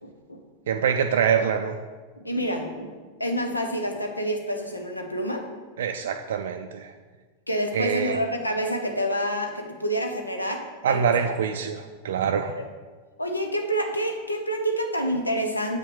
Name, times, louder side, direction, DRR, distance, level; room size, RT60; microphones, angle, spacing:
voice 1, 0.0-0.4 2.2-2.9 3.2-5.4 7.5-10.6 10.9-11.1 13.2-15.8, equal, 85° left, 4 dB, 1.0 m, -28 dB
voice 2, 0.7-1.8 5.8-6.9 7.7-8.2 10.8-12.5, right 7 dB, 60° right, 5 dB, 0.4 m, -25 dB
7.5 x 5.9 x 4.7 m, 1.4 s
figure-of-eight pair, 90°, 0 cm